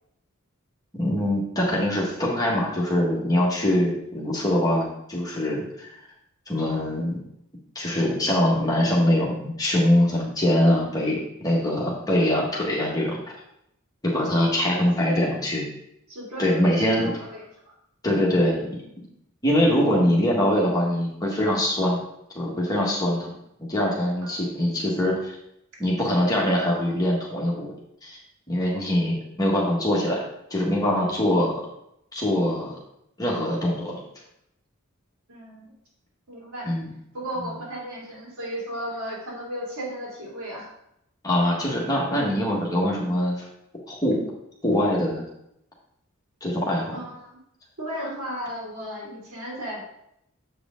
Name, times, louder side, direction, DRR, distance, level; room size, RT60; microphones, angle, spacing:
voice 1, 0.9-6.0 6.5-7.2 7.7-13.2 14.0-15.6 16.4-17.1 18.0-18.6 19.4-22.0 22.3-23.3 23.7-25.4 25.8-27.7 28.0-28.2 28.5-30.2 30.5-31.6 32.1-32.8 33.2-34.0 36.6-36.9 41.2-43.4 43.9-44.2 44.6-45.2 46.4-47.0, left 1 dB, 20° left, -4 dB, 1.6 m, -23 dB
voice 2, 14.4-15.2 16.1-17.7 24.2-24.4 35.3-35.7 36.3-36.7 37.1-40.7 46.9-47.4 47.8-49.8, equal, 85° right, -4 dB, 2.6 m, -35 dB
7.5 x 4.8 x 3.7 m, 0.77 s
head